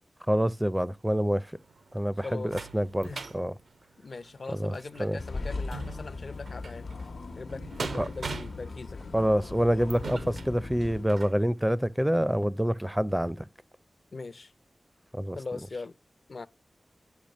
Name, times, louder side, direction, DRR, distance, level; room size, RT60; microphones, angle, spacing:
voice 1, 0.3-1.5 1.9-3.1 3.3-3.5 4.5-5.2 8.0-8.1 9.1-13.5 15.1-15.4, equal, 10° right, 0.4 m, -27 dB
sound 1, 1.6-11.4 12.0-12.1 12.4-12.5, right 4 dB, 80° right, 0.7 m, -43 dB
voice 2, 2.2-2.6 3.0-3.2 4.0-6.9 7.4-9.0 14.1-14.5 15.3-15.9 16.3-16.5, left 3 dB, 60° left, 0.5 m, -40 dB
sound 2, 5.2-11.0, left 3 dB, 85° left, 1.0 m, -39 dB
10.5 x 5.4 x 5.2 m
wide cardioid pair, 80°, 0 cm